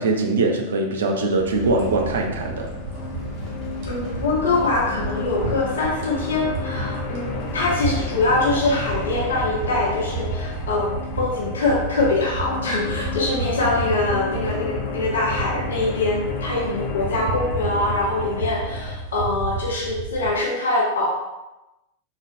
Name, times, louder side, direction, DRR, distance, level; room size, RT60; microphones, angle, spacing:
voice 1, 0.0-2.7, right 2 dB, 65° right, 3 dB, 0.4 m, -22 dB
sound 1, 1.4-20.3, right 3 dB, 45° right, 0.9 m, -32 dB
sound 2, 1.6-10.6, right 2 dB, 15° right, 1.1 m, -38 dB
sound 3, 2.0-19.0, left 5 dB, 35° left, 0.4 m, -33 dB
voice 2, 3.9-21.1, left 2 dB, 65° left, -4 dB, 0.8 m, -23 dB
3.7 x 2.1 x 2.6 m, 1.0 s
figure-of-eight pair, 90°, 0 cm